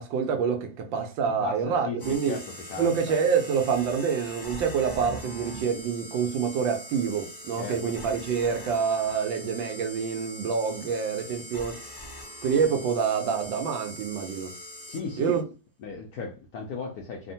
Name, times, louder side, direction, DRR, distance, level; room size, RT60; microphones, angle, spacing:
voice 1, 0.0-2.4 2.8-12.0 12.4-14.6 15.2-15.4, right 6 dB, 80° right, 1.4 m, -27 dB
voice 2, 1.4-2.4 2.7-3.1 7.6-7.8 14.9-15.3 15.8-17.3, left 5 dB, 75° left, 0.8 m, -36 dB
sound 1, 2.0-15.4, equal, 35° left, 0.7 m, -42 dB
3.4 x 2.1 x 2.7 m
omnidirectional pair, 2.1 m